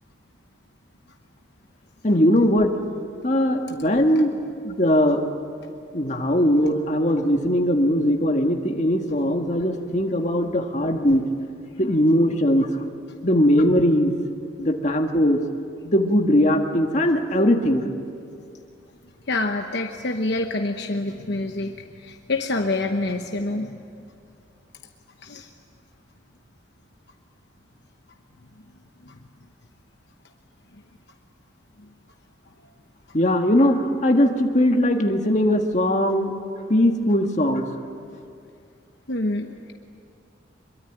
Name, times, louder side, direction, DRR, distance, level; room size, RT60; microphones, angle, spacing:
voice 1, 2.0-2.7 3.2-4.3 4.6-5.2 5.9-11.3 11.8-12.7 13.2-14.1 14.6-15.4 15.9-17.9 33.1-36.3 36.7-37.7, equal, 35° left, 3 dB, 1.8 m, -20 dB
voice 2, 19.3-23.8 25.2-25.5 29.0-29.2 39.1-39.7, left 2 dB, 55° left, 4 dB, 1.1 m, -27 dB
25.0 x 23.0 x 9.3 m, 2.4 s
head